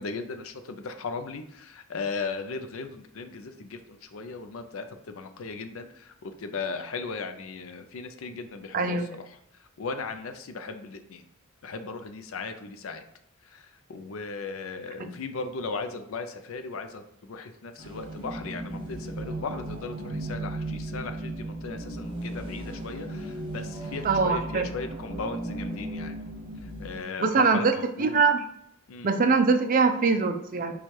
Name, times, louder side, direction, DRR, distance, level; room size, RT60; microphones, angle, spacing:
voice 1, 0.0-11.2 11.6-13.0 13.4-26.2 26.6-28.2 28.9-29.1, left 4 dB, 70° left, 8 dB, 0.5 m, -37 dB
voice 2, 8.7-9.1 15.0-15.1 24.0-24.7 27.2-27.7 28.0-28.5 29.0-30.7, right 4 dB, 40° right, 7 dB, 0.4 m, -23 dB
sound 1, 17.8-27.0, right 1 dB, 25° right, 0.8 m, -36 dB
4.3 x 2.3 x 4.6 m, 0.74 s
head